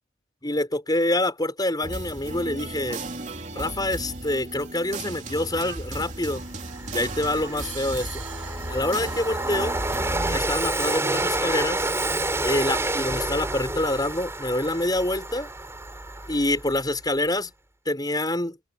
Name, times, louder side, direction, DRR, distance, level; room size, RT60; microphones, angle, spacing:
voice 1, 0.4-3.0 3.5-6.4 6.9-8.2 8.7-9.8 10.3-11.8 12.4-15.5 16.3-17.5 17.9-18.6, left 1 dB, 20° left, 6.3 m, -26 dB
sound 1, 1.8-10.4, right 2 dB, 40° right, 3.3 m, -35 dB
Train, 6.0-6.1 6.5-16.9, right 2 dB, 15° right, 4.6 m, -29 dB
open air
head